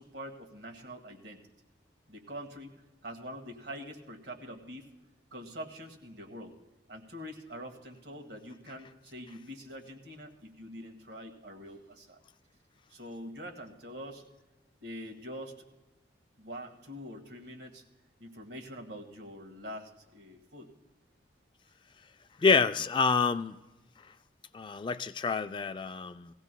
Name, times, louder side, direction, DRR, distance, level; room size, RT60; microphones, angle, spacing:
voice 1, 0.0-1.4 2.1-2.7 3.0-4.9 5.3-6.6 6.9-12.2 12.9-14.2 14.8-15.6 16.4-17.8 18.2-20.7, equal, 70° right, 3 dB, 1.8 m, -44 dB
voice 2, 22.4-23.6 24.5-26.3, left 5 dB, 25° left, 11 dB, 0.3 m, -27 dB
19.0 x 16.0 x 2.2 m, 1.1 s
head